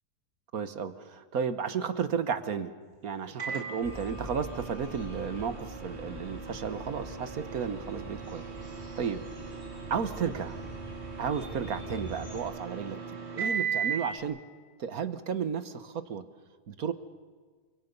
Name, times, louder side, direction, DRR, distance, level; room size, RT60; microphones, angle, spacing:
voice 1, 0.5-2.7 3.0-9.2 9.5-9.6 9.9-10.6 11.2-14.4 14.8-16.2 16.7-16.9, right 6 dB, 65° right, 11 dB, 1.6 m, -33 dB
Microwave oven, 3.4-14.2, right 6 dB, 40° right, 2.9 m, -38 dB
sound 1, 3.8-12.4, equal, 25° left, 5.2 m, -45 dB
29.5 x 25.0 x 5.4 m, 1.5 s
omnidirectional pair, 1.7 m